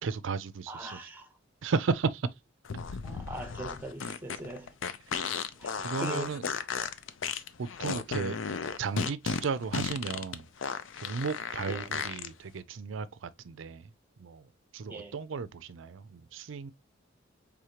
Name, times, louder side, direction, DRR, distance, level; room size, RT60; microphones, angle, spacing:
voice 1, 0.0-1.1 1.6-2.3 5.2-5.3 5.8-6.4 7.6-8.4 8.8-10.5 11.0-13.9 14.2-14.4 14.7-16.7, right 5 dB, 70° right, 0.4 m, -34 dB
voice 2, 0.7-1.3 3.0-4.7 5.3-6.3 11.7-11.9 14.9-15.2, right 1 dB, 10° right, 0.7 m, -41 dB
sound 1, 2.6-12.3, left 6 dB, 70° left, 0.5 m, -34 dB
4.9 x 3.6 x 2.8 m
head